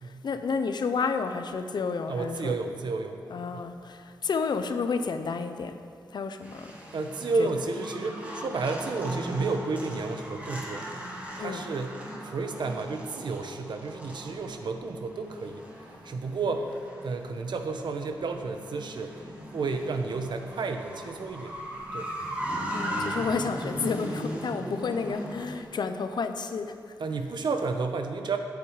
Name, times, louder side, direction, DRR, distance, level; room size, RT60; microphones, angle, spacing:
voice 1, 0.2-2.6 3.3-5.8 6.1-6.7 7.4-7.5 11.4-11.6 22.7-26.8, left 5 dB, 65° left, 8 dB, 0.7 m, -30 dB
voice 2, 2.1-3.2 3.5-3.7 6.9-10.9 11.4-15.6 16.0-16.7 17.0-21.6 21.9-22.1 27.0-28.4, right 4 dB, 75° right, 6 dB, 1.0 m, -31 dB
sound 1, 6.4-25.6, equal, 20° right, 1.9 m, -38 dB
14.0 x 8.3 x 4.9 m, 2.3 s
wide cardioid pair, 140°, 8 cm